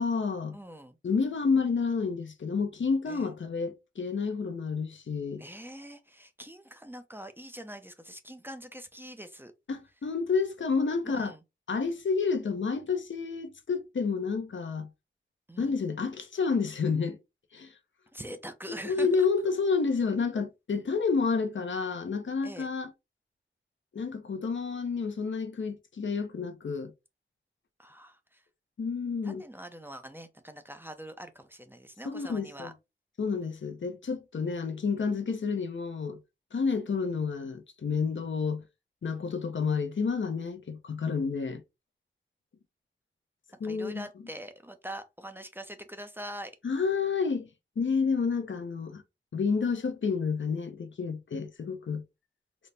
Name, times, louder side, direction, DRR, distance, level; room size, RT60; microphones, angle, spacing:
voice 1, 0.0-0.6 1.0-5.4 9.7-11.3 11.7-14.9 15.6-17.2 17.5-17.7 18.7-22.9 23.9-26.9 28.8-29.4 32.0-32.7 33.2-36.2 36.5-38.6 39.0-41.6 43.6-44.0 46.6-47.5 47.8-49.0 49.3-52.0, left 5 dB, 75° left, 0.7 m, -30 dB
voice 2, 0.5-1.0 3.1-3.3 5.4-9.5 11.0-11.4 15.5-15.7 18.1-19.3 22.4-22.7 27.8-28.4 29.2-32.7 43.6-46.5, right 1 dB, 10° right, 0.6 m, -44 dB
4.1 x 2.1 x 3.3 m
wide cardioid pair, 75°, 20 cm